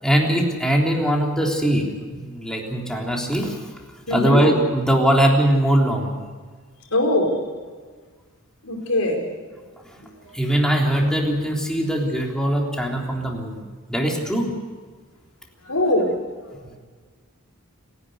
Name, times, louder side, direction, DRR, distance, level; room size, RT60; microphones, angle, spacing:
voice 1, 0.0-3.6 4.1-6.1 10.3-13.6 13.9-14.5, right 1 dB, 5° left, -1 dB, 3.6 m, -21 dB
voice 2, 4.1-4.4 6.9-7.4 8.6-9.2 10.1-10.2 15.6-16.1, left 1 dB, 85° left, 2 dB, 5.0 m, -21 dB
29.5 x 11.0 x 8.1 m, 1.5 s
head